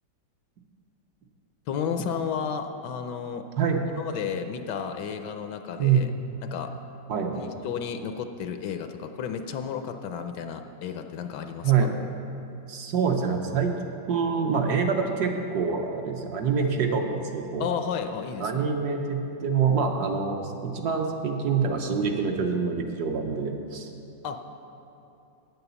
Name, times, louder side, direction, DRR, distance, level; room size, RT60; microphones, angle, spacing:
voice 1, 1.7-3.4 3.9-6.1 6.4-6.7 7.3-11.9 17.6-18.6 24.2-24.4, left 7 dB, 75° left, 7 dB, 1.1 m, -32 dB
voice 2, 5.8-6.1 7.1-7.4 11.6-11.9 12.7-13.7 14.1-17.7 18.4-23.9, right 6 dB, 65° right, 3 dB, 1.2 m, -26 dB
9.2 x 8.0 x 6.9 m, 2.9 s
omnidirectional pair, 2.0 m